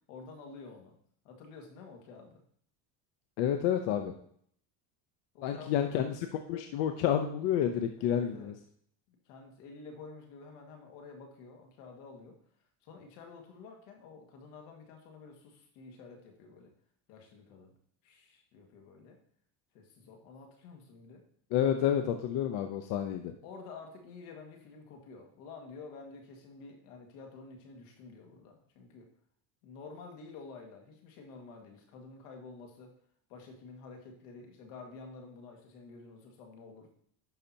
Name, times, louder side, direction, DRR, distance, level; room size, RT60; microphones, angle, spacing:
voice 1, 0.1-1.0 1.2-2.4 5.3-5.9 8.0-8.6 9.1-12.4 12.8-16.7 17.1-17.7 18.0-19.2 19.7-21.2 23.4-29.1 29.6-32.9 33.3-36.9, left 4 dB, 90° left, 3 dB, 2.0 m, -50 dB
voice 2, 3.4-4.1 5.4-6.2 6.5-8.5 21.5-23.3, left 9 dB, 65° left, 6 dB, 0.8 m, -29 dB
10.5 x 5.8 x 2.8 m, 0.63 s
cardioid pair, 125°, 45 cm